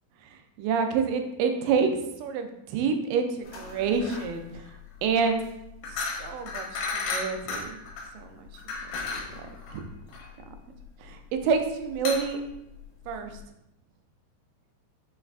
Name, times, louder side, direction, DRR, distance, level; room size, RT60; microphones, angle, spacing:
voice 1, 0.2-5.4 5.8-7.8 8.1-8.5 9.7-9.8 11.0-12.4 13.1-13.4, right 5 dB, 85° right, 6 dB, 2.2 m, -28 dB
sound 1, 3.4-13.4, left 4 dB, 80° left, 2.4 m, -36 dB
6.2 x 2.4 x 3.3 m, 0.86 s
omnidirectional pair, 3.7 m